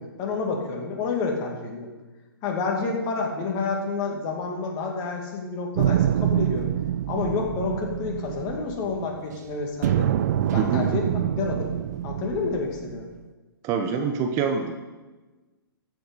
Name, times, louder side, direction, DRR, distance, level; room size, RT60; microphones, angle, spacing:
voice 1, 0.0-1.9 2.4-6.7 7.1-10.1 10.5-11.7 12.0-13.1, left 4 dB, 30° left, 1 dB, 2.3 m, -29 dB
sound 1, 5.7-9.3 9.8-13.2, right 11 dB, 45° right, 0.5 m, -26 dB
voice 2, 13.6-14.7, right 6 dB, 25° right, 5 dB, 0.9 m, -25 dB
14.5 x 7.6 x 5.4 m, 1.2 s
figure-of-eight pair, 130°, 13 cm